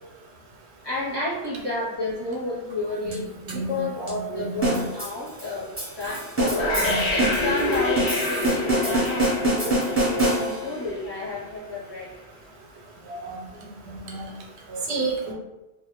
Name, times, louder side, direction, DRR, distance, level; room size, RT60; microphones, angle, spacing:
voice 1, 0.8-5.7 6.0-12.1, left 2 dB, 25° left, -9 dB, 0.7 m, -31 dB
sound 1, 2.7-3.2 3.5-3.7 4.1-4.2 5.0-5.2 5.6-5.7 6.0-6.3 7.7-7.8 8.1-8.6, right 2 dB, 40° right, 0.4 m, -37 dB
voice 2, 3.5-4.8 6.7-7.5 7.8-8.0 8.8-8.9 13.1-13.4 13.8-14.2 14.7-15.3, right 3 dB, 80° right, -1 dB, 0.9 m, -31 dB
sound 2, 4.6-10.8, right 1 dB, 15° right, 0.7 m, -26 dB
sound 3, 6.4-11.3, left 2 dB, 80° left, 0.9 m, -28 dB
2.1 x 2.1 x 2.9 m, 1.0 s
omnidirectional pair, 1.1 m